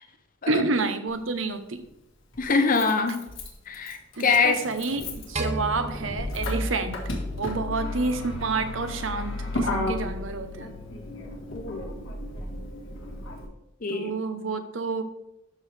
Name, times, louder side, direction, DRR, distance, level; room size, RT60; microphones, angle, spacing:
voice 1, 0.5-1.8 4.2-7.0 7.4-10.7 13.9-15.0, right 3 dB, 70° right, 9 dB, 0.9 m, -29 dB
Motor vehicle (road), 1.1-1.2 2.3-13.5, left 1 dB, 75° left, 1.8 m, -33 dB
voice 2, 2.4-3.2 3.7-4.6 11.5-12.0 13.8-14.1, left 4 dB, 45° left, 7 dB, 0.7 m, -24 dB
sound 1, 5.4-7.7, right 2 dB, 35° right, 0.8 m, -35 dB
12.5 x 4.6 x 3.4 m, 0.84 s
head